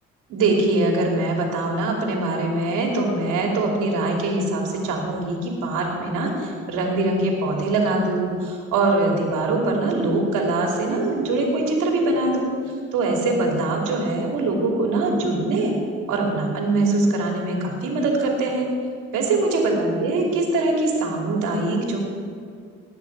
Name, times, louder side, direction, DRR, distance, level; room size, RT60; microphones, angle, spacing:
voice 1, 0.3-12.5 12.9-15.7 16.1-18.7 19.1-22.0, right 2 dB, 90° right, 0 dB, 2.8 m, -22 dB
19.0 x 9.4 x 4.7 m, 2.2 s
cardioid pair, 90°, 30 cm